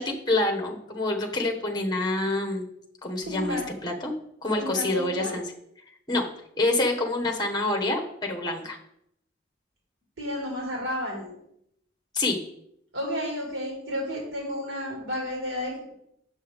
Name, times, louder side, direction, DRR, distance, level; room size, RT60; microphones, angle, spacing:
voice 1, 0.0-2.6 3.0-4.1 4.4-5.4 6.1-6.2 6.6-8.8 12.1-12.4, left 2 dB, 20° left, 2 dB, 1.3 m, -27 dB
voice 2, 3.3-3.6 4.6-5.4 10.2-11.3 12.9-15.9, equal, 80° right, -3 dB, 2.3 m, -32 dB
8.9 x 7.1 x 3.6 m, 0.74 s
head